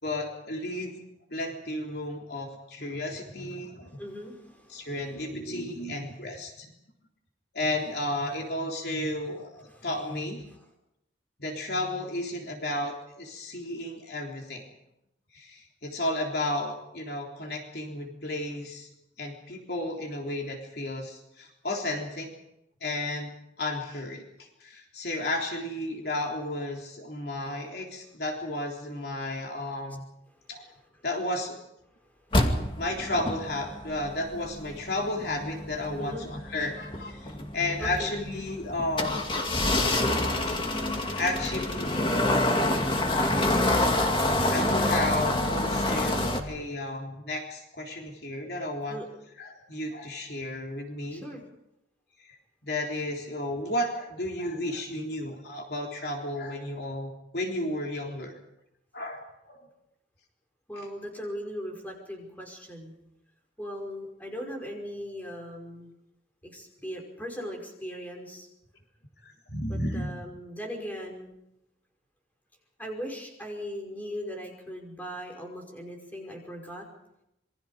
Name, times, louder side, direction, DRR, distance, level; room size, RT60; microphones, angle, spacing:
voice 1, 0.0-0.9 1.3-3.9 4.7-6.7 7.5-10.4 11.4-14.6 15.3-18.9 19.2-22.3 22.8-23.3 23.6-30.0 30.5-30.7 31.0-31.6 32.8-39.2 40.5-40.6 41.2-42.8 43.1-44.2 44.5-49.0 49.4-51.2 52.2-52.4 52.6-58.3 58.9-59.6 69.2-70.1, left 1 dB, 60° left, 1 dB, 3.7 m, -33 dB
voice 2, 3.9-5.2 9.7-9.9 32.7-32.8 36.0-36.2 37.8-38.1 48.9-49.1 51.1-51.4 60.7-63.0 63.6-65.9 66.4-68.5 69.7-71.3 72.8-76.9, equal, 10° left, 1 dB, 5.5 m, -39 dB
sound 1, 32.3-46.4, left 1 dB, 25° left, 2.3 m, -27 dB
27.5 x 23.5 x 5.1 m, 0.83 s
head